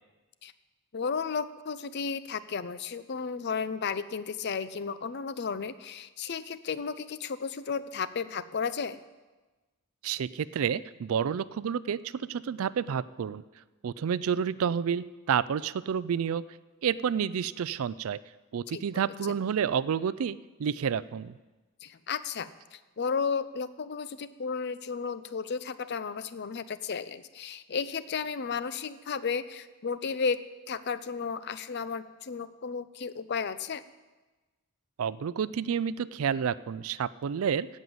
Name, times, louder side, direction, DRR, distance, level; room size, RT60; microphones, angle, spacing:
voice 1, 0.9-9.0 18.7-18.8 21.8-33.8, left 5 dB, 50° left, 14 dB, 0.5 m, -33 dB
voice 2, 10.0-13.4 13.8-16.4 16.8-18.2 18.5-21.3 35.0-37.7, right 7 dB, 70° right, 18 dB, 0.4 m, -30 dB
16.0 x 5.5 x 7.8 m, 1.2 s
head